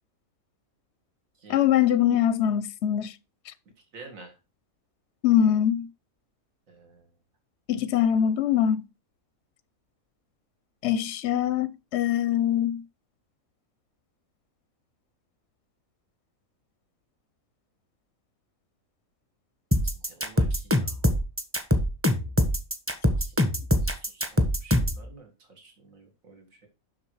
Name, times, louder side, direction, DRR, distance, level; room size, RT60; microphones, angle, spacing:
voice 1, 1.5-3.1 3.5-3.6 5.2-5.9 7.7-8.8 10.8-12.8, left 10 dB, 60° left, 0.8 m, -23 dB
voice 2, 3.9-4.3 6.7-7.0 19.8-21.2 23.2-23.3 23.8-26.7, right 3 dB, 70° right, 2.4 m, -50 dB
sound 1, 19.7-25.0, left 1 dB, 10° right, 1.1 m, -23 dB
7.5 x 6.2 x 4.7 m
omnidirectional pair, 1.5 m